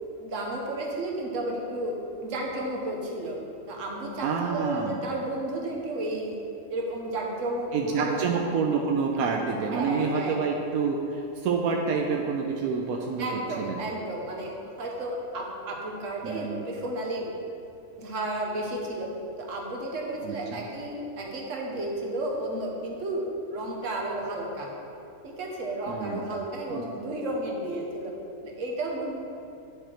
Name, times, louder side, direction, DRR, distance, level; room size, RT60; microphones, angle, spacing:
voice 1, 0.2-3.4 3.7-6.4 6.7-8.3 9.7-10.4 13.2-17.3 18.0-19.1 19.4-24.7 25.2-28.1 28.4-29.1, right 1 dB, 65° right, -1 dB, 1.4 m, -32 dB
voice 2, 4.2-4.9 7.7-13.3 13.6-13.7 16.2-16.6 20.2-20.4 25.9-26.2 26.7-26.8, right 5 dB, 85° right, 0 dB, 1.1 m, -27 dB
9.7 x 4.5 x 4.4 m, 2.6 s
omnidirectional pair, 1.5 m